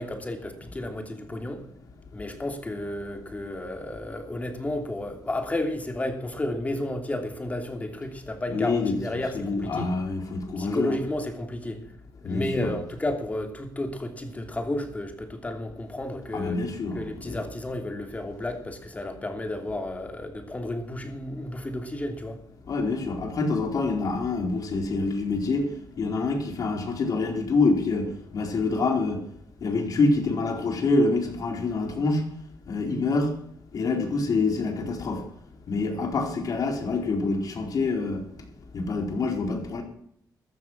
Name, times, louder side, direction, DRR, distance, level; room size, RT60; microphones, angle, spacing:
voice 1, 0.0-1.6 2.1-9.9 10.6-11.8 12.2-16.7 16.9-22.4, left 1 dB, 20° left, 2.9 m, -32 dB
voice 2, 8.5-8.9 9.3-10.9 12.2-12.7 16.3-17.4 22.7-29.2 29.6-32.3 32.7-33.3 33.7-35.3 35.7-38.2 38.7-39.8, left 3 dB, 55° left, 4.3 m, -26 dB
14.5 x 12.5 x 6.2 m
cardioid pair, 110°, 7 cm